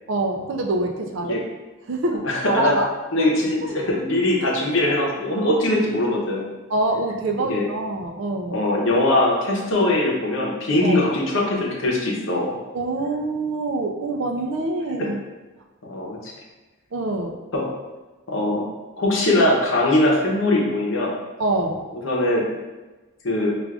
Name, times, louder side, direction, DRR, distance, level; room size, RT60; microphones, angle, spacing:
voice 1, 0.1-1.4 1.9-2.9 3.2-3.3 3.6-3.8 6.7-8.6 10.8-11.0 12.7-15.2 16.9-17.4 21.4-21.8, right 2 dB, 65° right, 3 dB, 0.4 m, -25 dB
voice 2, 2.2-2.7 3.1-6.5 7.5-7.7 8.5-12.6 15.8-16.3 17.5-17.6 18.3-18.7 19.0-21.1 21.9-22.5 23.2-23.5, left 1 dB, 70° left, -2 dB, 0.7 m, -21 dB
4.6 x 2.4 x 2.4 m, 1.2 s
head